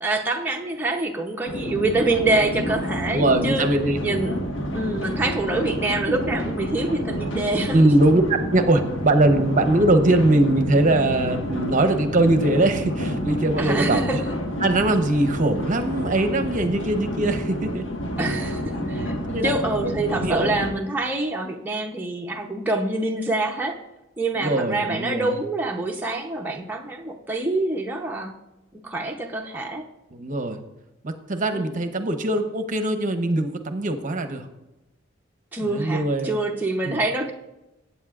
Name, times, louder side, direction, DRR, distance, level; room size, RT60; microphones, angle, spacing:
voice 1, 0.0-3.7 4.0-4.3 4.7-7.8 13.6-14.2 18.2-19.1 19.4-23.8 24.2-28.3 28.7-29.9 31.5-31.8 35.5-37.3, right 2 dB, 10° right, 0 dB, 0.7 m, -26 dB
sound 1, 1.5-20.7, equal, 70° left, 1.4 m, -29 dB
voice 2, 3.1-4.0 7.7-8.2 8.5-14.2 14.6-17.8 19.3-19.5 19.8-19.9 20.2-20.6 24.4-25.3 30.1-30.6 31.0-34.5 35.6-36.4 36.8-37.0, right 2 dB, 45° right, 6 dB, 0.8 m, -21 dB
15.0 x 8.4 x 2.4 m, 0.97 s
head